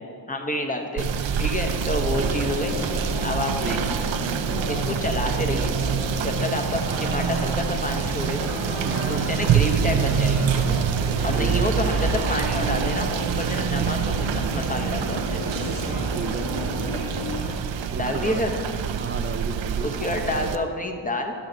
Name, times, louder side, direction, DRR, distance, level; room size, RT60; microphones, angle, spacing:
voice 1, 0.3-2.8 3.2-3.8 4.7-5.8 6.2-8.5 9.1-10.6 11.2-15.4 17.9-18.5 19.8-21.3, left 1 dB, 15° left, 4 dB, 1.0 m, -28 dB
Rain / Motor vehicle (road), 1.0-20.6, right 7 dB, 75° right, 0.6 m, -26 dB
voice 2, 2.1-2.4 3.6-3.9 8.8-9.3 11.3-11.9 16.1-16.5 17.9-18.4 19.0-20.5, right 5 dB, 30° right, 9 dB, 0.5 m, -33 dB
sound 1, 2.2-17.6, equal, 85° left, 1.5 m, -32 dB
12.0 x 6.3 x 4.0 m, 2.4 s
cardioid pair, 70°, 46 cm